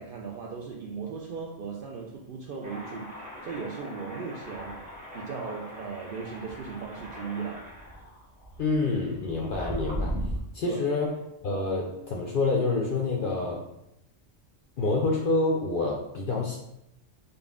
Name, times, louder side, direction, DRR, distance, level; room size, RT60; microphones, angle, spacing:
voice 1, 0.0-4.8 5.1-7.7 10.7-10.8, right 5 dB, 60° right, -1 dB, 0.5 m, -37 dB
sound 1, 2.6-10.4, equal, 10° right, 0.7 m, -38 dB
voice 2, 8.6-10.2 10.5-11.2 11.4-13.6 14.8-16.6, left 3 dB, 60° left, -1 dB, 0.6 m, -27 dB
3.9 x 2.3 x 3.5 m, 0.83 s
omnidirectional pair, 1.3 m